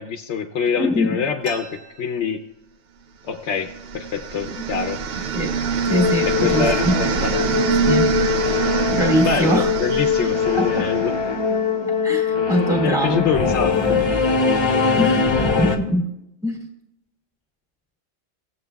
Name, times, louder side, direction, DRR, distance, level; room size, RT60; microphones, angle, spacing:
voice 1, 0.0-1.7 2.0-2.4 3.2-5.0 6.2-7.3 9.2-11.1 12.8-14.0, left 6 dB, 65° left, 6 dB, 0.9 m, -25 dB
voice 2, 0.8-1.2 4.5-4.6 5.3-5.5 5.9-7.0 7.8-8.1 8.9-9.7 10.2-10.9 12.0-13.3 15.0-15.2 15.6-16.1 16.4-16.6, equal, 5° right, 1 dB, 1.8 m, -22 dB
sound 1, 1.4-3.0 3.4-3.5 3.7-4.3 4.9-5.1 5.8-6.0 6.4-6.9, right 4 dB, 90° right, 1.6 m, -42 dB
sound 2, 3.5-11.5, right 6 dB, 60° right, 0.7 m, -25 dB
Singing / Musical instrument, 5.9-15.8, left 5 dB, 25° left, 0.8 m, -21 dB
18.0 x 7.8 x 2.3 m, 0.82 s
omnidirectional pair, 1.3 m